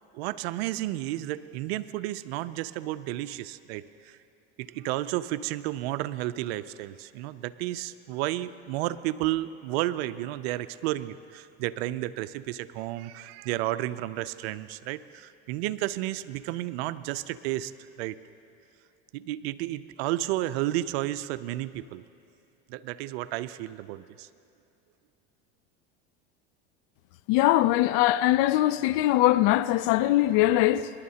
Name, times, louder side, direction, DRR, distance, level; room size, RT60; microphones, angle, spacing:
voice 1, 0.1-4.2 4.6-17.7 18.0-18.2 19.1-22.0 22.7-24.3, right 15 dB, 75° right, 0.5 m, -32 dB
voice 2, 27.3-30.9, left 15 dB, 65° left, 0.5 m, -22 dB
26.0 x 11.5 x 2.8 m
supercardioid pair, 100°, 32 cm